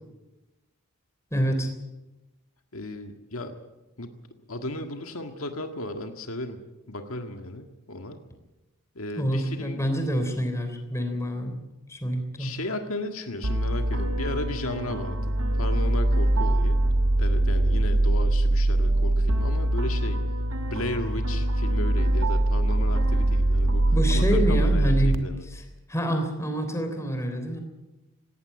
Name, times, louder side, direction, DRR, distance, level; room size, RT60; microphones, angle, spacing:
voice 1, 1.3-1.7 9.2-11.6 11.9-12.5 23.9-25.2 25.4-27.6, equal, 15° left, 6 dB, 3.4 m, -27 dB
voice 2, 2.7-3.5 4.0-4.1 4.5-6.6 6.9-8.2 9.0-9.8 12.4-16.8 17.2-20.2 20.6-25.5, left 1 dB, 75° left, 5 dB, 1.8 m, -35 dB
sound 1, 13.4-25.2, right 1 dB, 75° right, 1.5 m, -23 dB
19.0 x 17.5 x 8.7 m, 1.0 s
head